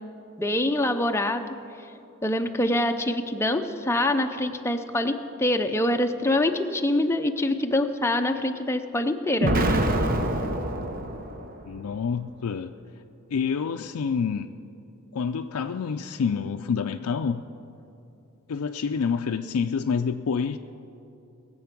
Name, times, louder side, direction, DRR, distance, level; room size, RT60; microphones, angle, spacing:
voice 1, 0.4-1.4 2.2-9.9, left 1 dB, 10° left, 6 dB, 0.6 m, -25 dB
Explosion, 9.4-11.5, right 1 dB, 40° right, 0.8 m, -25 dB
voice 2, 11.7-12.8 13.3-14.5 15.1-17.4 18.5-20.6, left 6 dB, 80° left, 5 dB, 0.4 m, -27 dB
20.5 x 7.8 x 5.9 m, 2.8 s
head